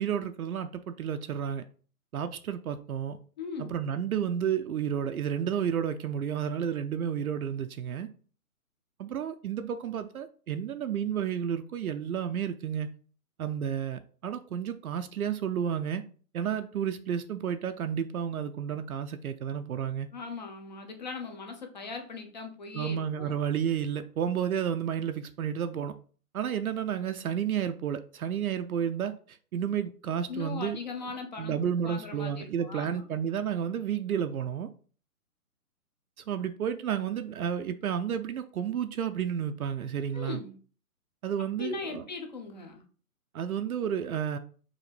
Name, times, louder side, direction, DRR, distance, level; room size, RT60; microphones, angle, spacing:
voice 1, 0.0-1.6 2.1-3.2 3.6-8.1 9.0-12.9 13.4-16.0 16.3-20.1 22.7-25.9 26.3-30.8 31.4-34.7 36.3-40.4 41.2-42.0 43.3-44.4, right 8 dB, 70° right, 0.5 m, -31 dB
voice 2, 3.4-3.8 20.1-23.3 30.3-33.0 40.1-40.5 41.6-42.8, left 4 dB, 30° left, 0.6 m, -39 dB
4.9 x 2.7 x 3.3 m
hypercardioid pair, 150°, 45 cm